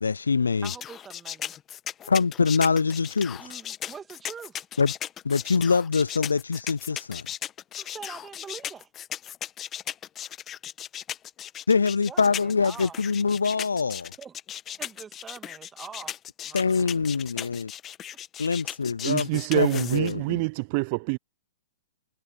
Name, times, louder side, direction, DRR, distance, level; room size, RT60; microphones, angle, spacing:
voice 1, 0.0-0.7 2.1-3.4 4.8-4.9 5.2-7.3 11.7-14.1 16.5-17.7 18.4-20.4, left 5 dB, 85° left, 0.3 m, -24 dB
sound 1, 0.6-20.1, left 10 dB, 25° left, 1.5 m, -37 dB
voice 2, 0.6-1.6 3.4-4.7 7.8-8.9 11.7-11.8 12.1-13.0 14.2-14.4 14.8-16.1 16.4-16.9, right 6 dB, 15° right, 2.2 m, -44 dB
voice 3, 19.0-21.2, right 28 dB, 45° right, 0.5 m, -26 dB
hypercardioid pair, 115°, 0 cm